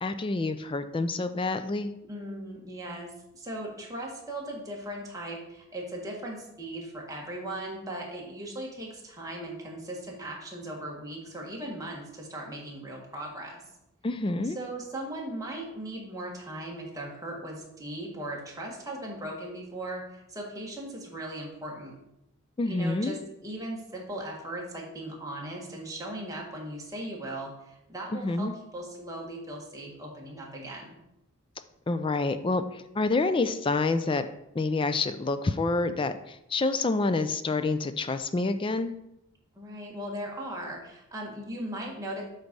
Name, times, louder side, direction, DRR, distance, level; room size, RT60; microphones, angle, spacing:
voice 1, 0.0-1.9 14.0-14.6 22.6-23.2 28.1-28.5 31.9-34.3 34.6-38.9, left 3 dB, 25° left, 10 dB, 0.3 m, -28 dB
voice 2, 2.1-13.6 14.4-21.9 22.6-28.5 28.7-31.0 39.5-42.2, right 1 dB, 15° right, -2 dB, 1.6 m, -38 dB
7.9 x 4.0 x 5.3 m, 0.83 s
head